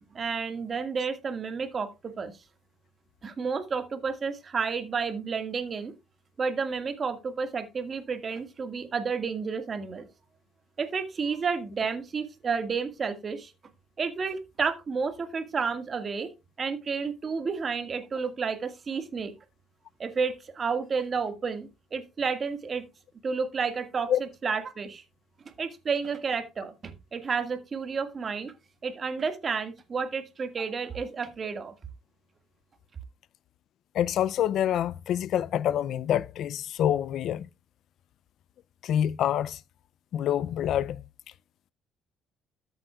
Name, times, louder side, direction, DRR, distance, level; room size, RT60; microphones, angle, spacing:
voice 1, 0.1-2.3 3.2-5.9 6.4-10.1 10.8-13.5 14.0-16.3 16.6-19.3 20.0-22.8 23.2-25.0 25.6-28.5 28.8-31.7, right 5 dB, 35° right, 1.7 m, -31 dB
voice 2, 33.9-37.5 38.8-39.6 40.1-41.0, left 10 dB, 65° left, 0.4 m, -26 dB
13.0 x 7.9 x 2.3 m
cardioid pair, 95°, 0 cm